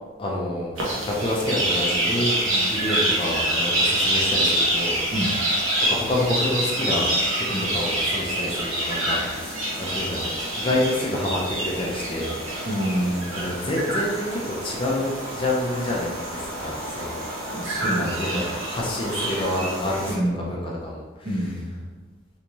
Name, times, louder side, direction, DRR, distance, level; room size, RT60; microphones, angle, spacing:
voice 1, 0.2-0.8 1.0-2.4 2.7-5.0 5.9-7.5 7.7-10.3 10.5-12.3 13.4-17.2 17.9-20.1 20.5-21.0, left 1 dB, 25° left, -3 dB, 0.5 m, -28 dB
sound 1, 0.8-20.1, right 1 dB, 70° right, 0.9 m, -26 dB
voice 2, 12.6-13.5 17.5-18.4 20.1-20.6 21.2-21.9, equal, 55° right, -6 dB, 1.2 m, -28 dB
3.4 x 2.7 x 2.9 m, 1.2 s
head